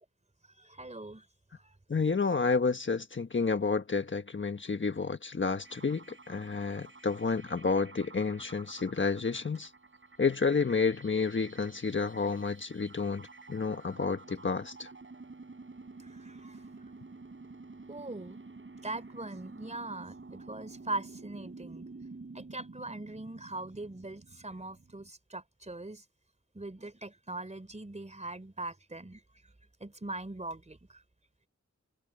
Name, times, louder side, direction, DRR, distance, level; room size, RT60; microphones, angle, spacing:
voice 1, 0.6-1.3 1.5-1.7 16.0-16.6 17.9-18.4 18.8-21.9 22.3-26.0 26.5-29.2 29.8-31.0, right 2 dB, 25° right, 3.7 m, -41 dB
voice 2, 1.9-9.7 10.2-14.9, left 4 dB, 40° left, 1.4 m, -30 dB
sound 1, 5.6-25.1, right 3 dB, 40° right, 7.3 m, -50 dB
wide cardioid pair, 80°, 29 cm